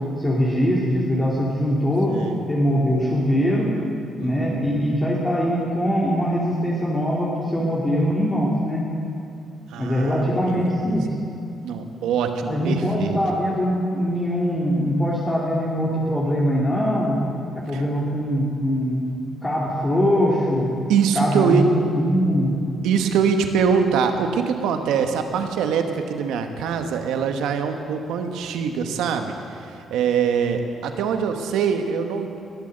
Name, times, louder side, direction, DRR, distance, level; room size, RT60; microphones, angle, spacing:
voice 1, 0.2-2.2 2.5-3.7 4.2-8.8 9.8-11.1 12.5-17.2 17.7-19.0 19.4-20.7 21.1-21.7 21.9-22.5, equal, 20° left, -5 dB, 2.6 m, -22 dB
voice 2, 2.1-2.4 4.2-4.6 9.7-11.0 11.6-13.2 17.7-17.8 20.9-21.7 22.8-32.3, right 6 dB, 85° right, 6 dB, 1.2 m, -23 dB
20.5 x 8.5 x 6.6 m, 2.5 s
cardioid pair, 90°, 0 cm